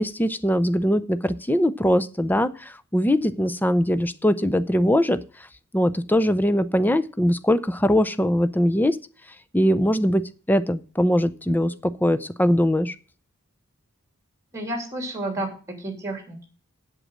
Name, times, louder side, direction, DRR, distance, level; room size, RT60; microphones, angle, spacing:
voice 1, 0.0-5.2 5.7-9.0 9.5-13.0, equal, 10° left, 13 dB, 0.5 m, -21 dB
voice 2, 14.5-16.4, right 1 dB, 15° right, 4 dB, 3.0 m, -31 dB
8.1 x 7.5 x 6.4 m, 0.38 s
head